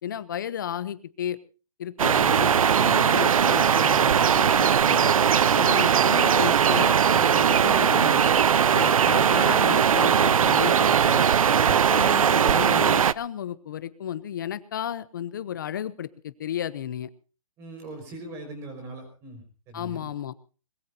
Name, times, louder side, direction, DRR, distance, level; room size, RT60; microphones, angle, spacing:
voice 1, 0.0-1.4 1.8-5.2 5.6-8.2 8.7-11.3 11.9-17.1 19.7-20.3, left 10 dB, 35° left, 16 dB, 0.7 m, -33 dB
sound 1, 2.0-13.1, right 8 dB, 70° right, 0.8 m, -20 dB
voice 2, 17.6-20.1, right 1 dB, 15° right, 6 dB, 5.1 m, -41 dB
21.5 x 21.0 x 2.8 m, 0.36 s
hypercardioid pair, 175°, 18 cm